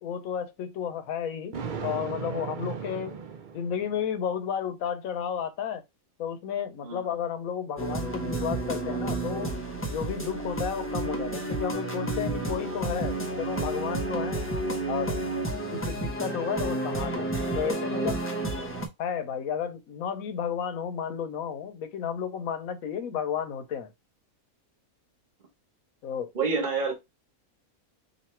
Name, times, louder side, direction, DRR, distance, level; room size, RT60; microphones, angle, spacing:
voice 1, 0.0-1.5 1.8-3.2 3.5-5.8 6.2-9.5 9.9-14.4 14.9-15.2 15.7-18.2 19.0-23.9 26.0-26.3, left 8 dB, 70° left, 1.1 m, -32 dB
Thunder, 1.5-4.1, right 6 dB, 80° right, 0.4 m, -36 dB
sound 1, 7.8-18.9, right 2 dB, 15° left, 0.6 m, -31 dB
voice 2, 26.3-26.9, right 4 dB, 35° right, 1.3 m, -27 dB
3.0 x 2.7 x 4.2 m
omnidirectional pair, 1.6 m